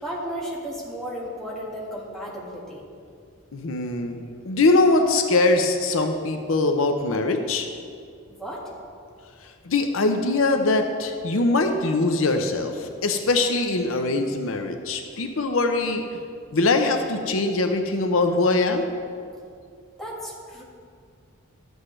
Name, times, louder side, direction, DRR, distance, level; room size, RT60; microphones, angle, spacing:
voice 1, 0.0-2.8 8.3-8.7 20.0-20.6, equal, ahead, -5 dB, 1.7 m, -34 dB
voice 2, 3.5-4.2 4.4-7.7 9.4-16.0 16.5-18.9, left 2 dB, 75° left, 5 dB, 0.7 m, -22 dB
13.0 x 8.0 x 3.3 m, 2.3 s
head